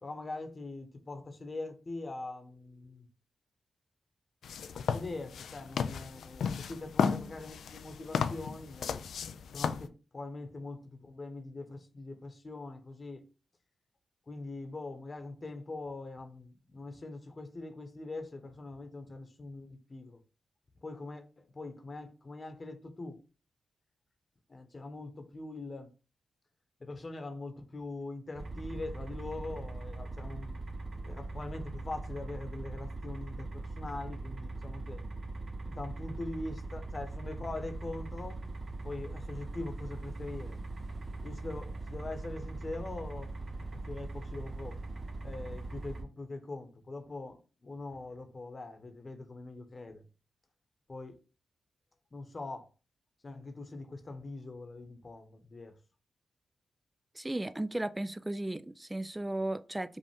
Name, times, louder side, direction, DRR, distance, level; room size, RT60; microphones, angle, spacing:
voice 1, 0.0-3.1 4.7-9.0 9.5-13.2 14.3-20.2 20.8-23.2 24.5-25.9 26.8-30.6 31.0-35.0 35.6-38.4 38.8-40.6 41.2-43.3 43.7-44.8 45.2-50.0 50.9-51.2 52.1-52.7 53.2-55.7, left 2 dB, 40° left, 1.0 m, -42 dB
sound 1, 4.4-9.9, left 6 dB, 85° left, 0.3 m, -34 dB
sound 2, 28.4-46.0, right 2 dB, 60° right, 1.0 m, -41 dB
voice 2, 57.1-60.0, right 1 dB, 20° right, 0.3 m, -35 dB
5.3 x 2.4 x 3.5 m
cardioid pair, 55°, 0 cm